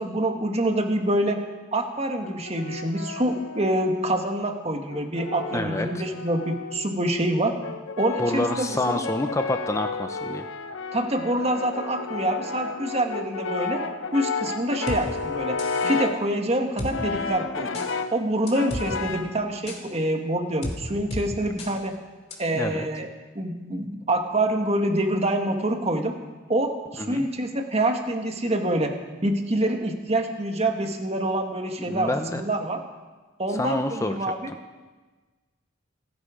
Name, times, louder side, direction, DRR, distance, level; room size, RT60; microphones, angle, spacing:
voice 1, 0.0-1.4 1.7-7.5 8.0-9.0 10.9-13.8 14.1-15.6 15.9-17.8 18.1-21.9 22.4-23.1 23.4-26.1 26.5-28.9 29.2-32.8 33.4-34.5, right 1 dB, 30° right, 4 dB, 1.6 m, -26 dB
Brass instrument, 2.2-4.2 4.9-7.0 7.6-16.3 16.9-18.2 18.5-19.4, left 4 dB, 80° left, 0.9 m, -32 dB
voice 2, 5.5-5.9 8.2-10.5 22.5-22.9 27.0-27.3 31.8-32.4 33.5-34.6, left 2 dB, 15° left, 7 dB, 0.6 m, -28 dB
sound 1, 14.9-15.0 15.6-15.9 16.8-16.9 17.7-17.9 18.5-18.9 19.7-19.8 20.6-20.8 21.1-21.2 21.6-21.7 22.3-22.4, left 1 dB, 35° left, 2.6 m, -32 dB
28.5 x 9.9 x 5.1 m, 1.3 s
head